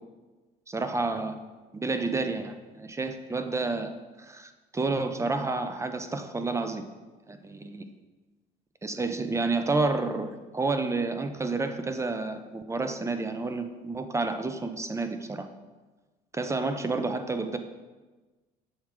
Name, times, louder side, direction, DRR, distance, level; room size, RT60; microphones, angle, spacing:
voice 1, 0.7-1.4 1.7-3.9 4.2-6.8 7.3-7.9 8.8-15.5 16.3-17.6, right 3 dB, 15° right, 8 dB, 0.5 m, -30 dB
6.4 x 3.5 x 6.0 m, 1.2 s
cardioid pair, 110°, 17 cm